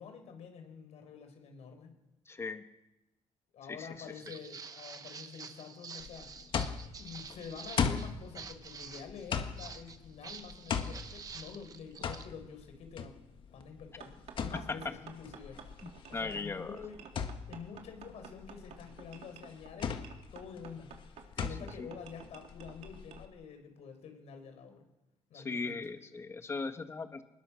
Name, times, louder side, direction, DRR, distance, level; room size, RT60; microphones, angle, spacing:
voice 1, 0.0-2.0 3.5-6.3 7.0-13.1 13.5-15.6 16.1-20.0 20.3-20.9 21.4-24.8 25.3-25.8, left 6 dB, 75° left, 6 dB, 5.0 m, -48 dB
voice 2, 2.3-2.6 3.7-4.1 14.5-14.9 15.8-16.8 21.4-21.5 21.8-21.9 25.3-27.2, left 4 dB, 25° left, 8 dB, 1.4 m, -38 dB
Walk footsteps, 4.0-12.3, right 5 dB, 35° right, 1.3 m, -48 dB
sound 1, 6.0-23.3, left 6 dB, 50° left, 1.7 m, -39 dB
sound 2, 14.0-23.2, right 7 dB, 70° right, 3.2 m, -53 dB
26.5 x 20.5 x 6.4 m, 0.93 s
cardioid pair, 170°, 11 cm